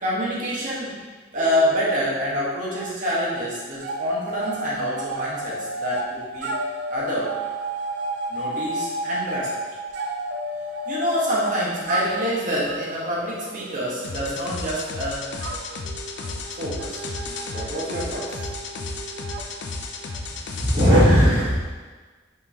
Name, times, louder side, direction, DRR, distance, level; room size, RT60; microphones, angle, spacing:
voice 1, 0.0-1.0 1.3-6.5 6.9-7.3 8.3-9.5 10.9-15.3 16.6-17.0 17.5-18.5, equal, 45° right, -7 dB, 1.2 m, -27 dB
sound 1, 1.4-3.0 3.2-20.3, right 2 dB, 65° right, 0.4 m, -33 dB
sound 2, 14.0-20.9, left 3 dB, 65° left, 0.4 m, -33 dB
voice 2, 20.5-21.5, equal, 30° right, -12 dB, 0.8 m, -16 dB
5.3 x 3.1 x 2.7 m, 1.4 s
head